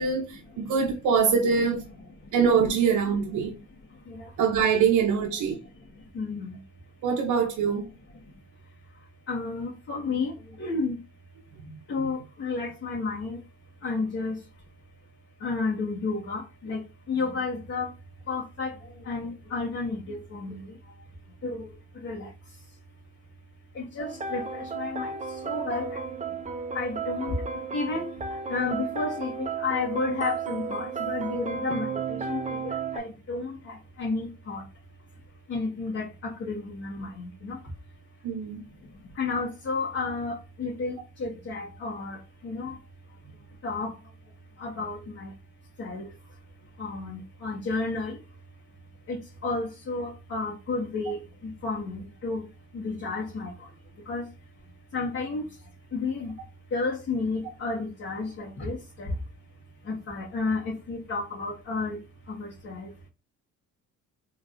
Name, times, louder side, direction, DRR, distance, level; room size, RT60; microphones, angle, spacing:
voice 1, 0.0-1.8 2.3-3.5 4.4-5.6 7.0-7.8 11.6-11.7 38.2-38.6, right 6 dB, 80° right, 0.8 m, -24 dB
voice 2, 6.1-6.6 9.3-10.3 10.6-11.0 11.9-13.4 13.8-14.3 15.4-16.8 17.1-17.9 18.3-18.7 19.1-20.6 21.4-21.7 22.0-22.3 23.7-25.1 25.4-26.0 26.7-27.3 27.7-28.1 28.5-34.6 35.5-36.1 36.4-37.6 39.2-42.2 42.4-42.7 43.6-43.9 44.6-45.3 45.8-46.0 46.8-48.2 49.1-49.2 49.4-51.2 51.6-52.4 52.7-53.5 54.1-54.2 54.9-55.4 55.9-56.3 56.7-59.1 59.9-62.0 62.4-63.1, left 3 dB, 50° left, 1.6 m, -31 dB
sound 1, 24.0-33.0, right 5 dB, 25° right, 0.6 m, -33 dB
3.7 x 3.4 x 2.6 m
cardioid pair, 90°, 30 cm